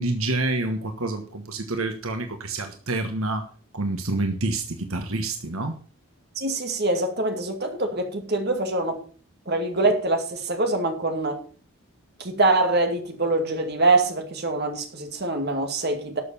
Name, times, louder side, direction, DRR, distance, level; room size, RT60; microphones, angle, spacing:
voice 1, 0.0-3.5 3.7-5.8, right 2 dB, 75° right, 1.4 m, -28 dB
voice 2, 6.4-9.0 9.5-11.4 12.2-16.2, right 2 dB, 50° right, 2.3 m, -24 dB
12.5 x 6.7 x 7.0 m
head